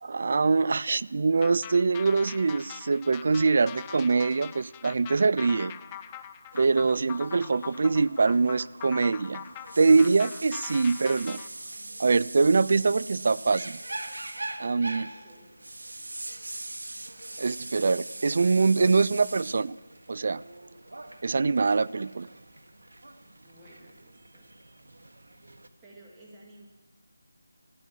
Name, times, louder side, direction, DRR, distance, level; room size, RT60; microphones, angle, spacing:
voice 1, 0.0-5.8 6.6-9.4 9.8-11.4 12.0-13.8 14.6-15.1 17.4-19.7 20.1-20.4 21.2-22.3, right 4 dB, 50° right, 19 dB, 0.3 m, -24 dB
sound 1, 1.4-11.5, left 10 dB, 15° left, 0.4 m, -43 dB
sound 2, 6.5-25.7, right 2 dB, 75° right, 1.4 m, -42 dB
voice 2, 15.0-15.5 23.4-24.5 25.8-26.7, right 1 dB, 15° right, -4 dB, 2.2 m, -53 dB
14.5 x 9.6 x 7.5 m, 1.2 s
figure-of-eight pair, 165°, 0 cm